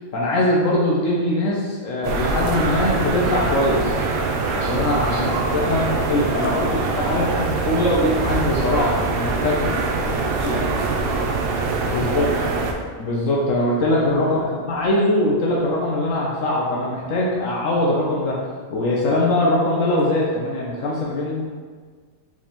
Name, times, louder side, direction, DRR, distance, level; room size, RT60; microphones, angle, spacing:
voice 1, 0.0-4.0 4.5-9.7 10.4-10.6 11.9-12.3 13.0-18.4 18.7-21.4, left 1 dB, 70° left, -4 dB, 1.0 m, -22 dB
sound 1, 2.0-12.7, right 3 dB, 75° right, 0.5 m, -23 dB
voice 2, 5.1-6.1 6.3-8.0 9.7-11.4 11.9-12.6 14.4-14.5, right 1 dB, 45° right, -7 dB, 1.5 m, -37 dB
4.8 x 3.5 x 3.0 m, 1.5 s
omnidirectional pair, 1.5 m